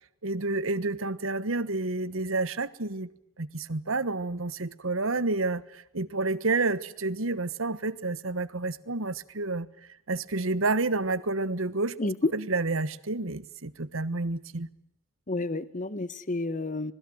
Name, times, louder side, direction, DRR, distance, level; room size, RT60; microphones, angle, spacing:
voice 1, 0.2-3.1 3.4-9.7 10.1-11.9 12.3-14.7, right 3 dB, 75° right, 16 dB, 1.3 m, -29 dB
voice 2, 12.0-12.3 15.3-16.9, left 2 dB, 40° left, 16 dB, 1.1 m, -30 dB
26.0 x 21.0 x 7.8 m, 0.79 s
head